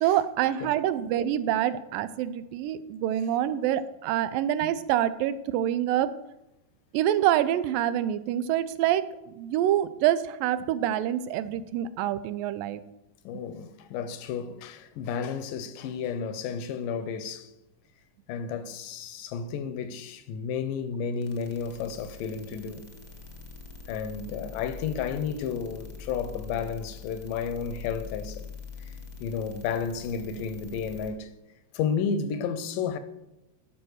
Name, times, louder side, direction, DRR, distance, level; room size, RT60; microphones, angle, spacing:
voice 1, 0.0-6.1 6.9-12.8, right 11 dB, 90° right, 2.4 m, -26 dB
voice 2, 13.2-17.5 18.3-22.9 23.9-28.5 28.8-28.9 29.2-31.3 31.7-33.0, left 6 dB, 80° left, 2.4 m, -32 dB
sound 1, 21.2-31.1, left 5 dB, 50° left, 0.5 m, -44 dB
12.0 x 5.5 x 6.4 m
omnidirectional pair, 3.9 m